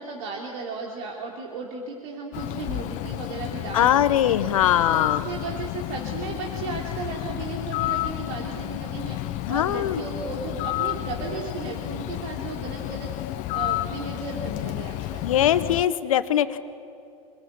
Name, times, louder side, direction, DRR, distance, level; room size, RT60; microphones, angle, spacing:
voice 1, 0.0-4.4 4.9-15.3, right 4 dB, 60° right, -2 dB, 3.5 m, -35 dB
Bird, 2.3-15.9, left 16 dB, 45° left, 0.7 m, -31 dB
voice 2, 3.7-5.3 9.5-10.0 15.2-16.6, left 11 dB, 70° left, 12 dB, 1.2 m, -21 dB
27.0 x 20.5 x 9.1 m, 2.5 s
figure-of-eight pair, 85°, 18 cm